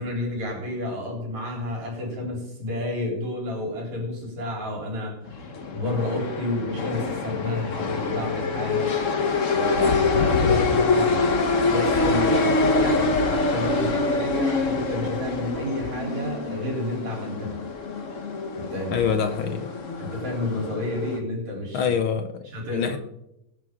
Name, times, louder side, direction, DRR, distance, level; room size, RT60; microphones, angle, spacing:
voice 1, 0.0-5.2 5.7-8.9 9.5-11.2 11.7-17.6 18.6-18.9 20.0-21.8 22.5-23.0, left 1 dB, 70° right, -1 dB, 5.0 m, -30 dB
sound 1, 5.2-21.2, left 3 dB, 50° left, 0.9 m, -25 dB
voice 2, 18.9-19.7 21.7-22.5 22.7-23.0, left 7 dB, 70° left, 8 dB, 1.2 m, -25 dB
23.5 x 9.2 x 3.7 m, 0.83 s
omnidirectional pair, 3.4 m